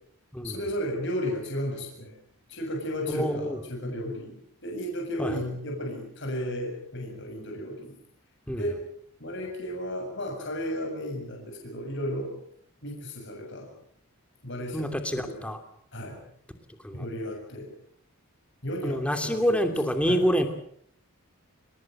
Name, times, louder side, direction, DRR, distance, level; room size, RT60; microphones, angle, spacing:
voice 1, 0.4-2.2 2.5-8.0 8.6-8.8 9.2-12.4 12.8-13.7 14.4-15.5 15.9-16.2 16.9-17.7 18.6-19.7 20.0-20.2, equal, 55° left, 1 dB, 7.4 m, -34 dB
voice 2, 3.1-3.6 5.2-5.3 8.5-8.6 14.7-15.6 16.8-17.0 18.8-20.5, equal, 5° left, 6 dB, 2.9 m, -27 dB
29.0 x 18.5 x 7.8 m, 0.65 s
head